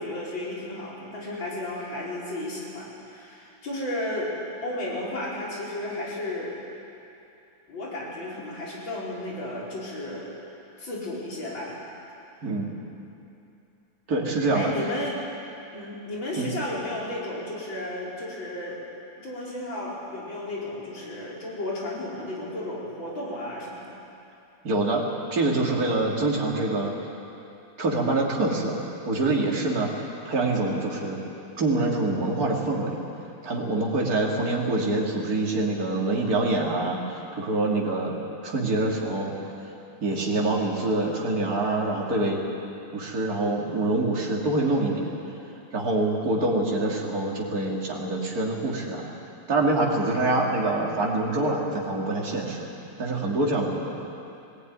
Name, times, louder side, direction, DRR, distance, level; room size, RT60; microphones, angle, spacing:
voice 1, 0.0-4.4 4.6-6.6 7.7-10.3 10.8-11.8 14.5-15.2 15.7-18.8 19.2-24.0, left 1 dB, 75° left, -5 dB, 5.4 m, -33 dB
voice 2, 14.1-14.7 16.4-16.5 24.6-25.0 25.3-26.9 27.8-29.9 30.2-31.2 31.6-33.0 33.4-38.2 38.4-39.3 40.0-42.4 42.9-45.1 45.7-49.1 49.5-52.7 53.0-54.0, right 2 dB, 50° right, -2 dB, 3.1 m, -25 dB
19.0 x 18.5 x 9.6 m, 2.7 s
omnidirectional pair, 2.1 m